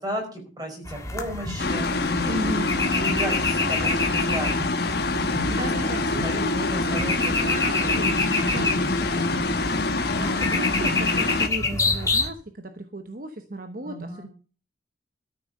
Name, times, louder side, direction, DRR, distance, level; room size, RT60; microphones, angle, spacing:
voice 1, 0.0-4.7 5.2-5.7 6.2-7.3 7.8-8.1 13.8-14.3, right 1 dB, 20° right, 3 dB, 5.0 m, -34 dB
sound 1, 0.9-12.3, left 3 dB, 15° left, 1.6 m, -28 dB
sound 2, 1.6-11.5, left 3 dB, 55° left, 1.3 m, -25 dB
voice 2, 2.3-2.7 5.5-14.3, right 1 dB, 45° right, 7 dB, 0.9 m, -35 dB
13.5 x 7.2 x 6.6 m, 0.39 s
head